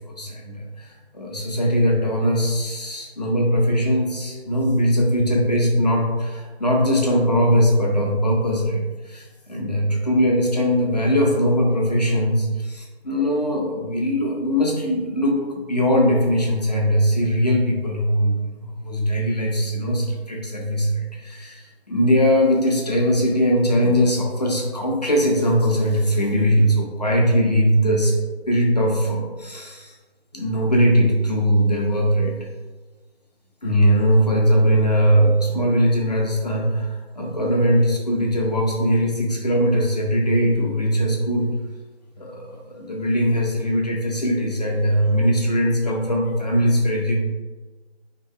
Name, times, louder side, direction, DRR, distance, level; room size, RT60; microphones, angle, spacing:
voice 1, 0.0-28.1 28.5-29.9 30.3-32.4 33.6-41.5 42.2-47.2, equal, 40° left, -2 dB, 0.4 m, -20 dB
2.8 x 2.7 x 2.2 m, 1.3 s
figure-of-eight pair, 165°, 32 cm